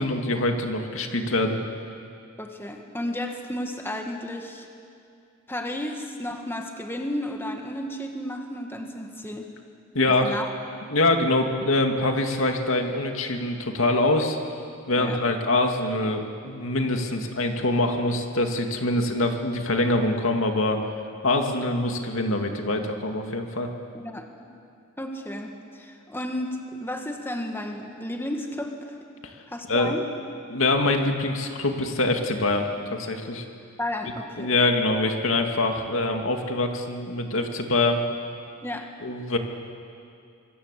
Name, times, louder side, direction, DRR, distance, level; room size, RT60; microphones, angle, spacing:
voice 1, 0.0-1.6 9.9-10.4 10.9-14.4 14.9-20.8 21.2-23.7 29.2-29.4 29.7-29.9 30.5-33.4 34.4-38.0 39.0-39.4, left 2 dB, 75° left, 4 dB, 2.3 m, -24 dB
voice 2, 2.4-4.7 5.5-9.5 10.1-10.5 14.9-15.2 23.9-24.3 25.0-28.8 29.5-30.1 33.8-34.5 38.6-38.9, left 1 dB, 10° left, 3 dB, 1.8 m, -33 dB
25.5 x 22.5 x 8.4 m, 2.4 s
head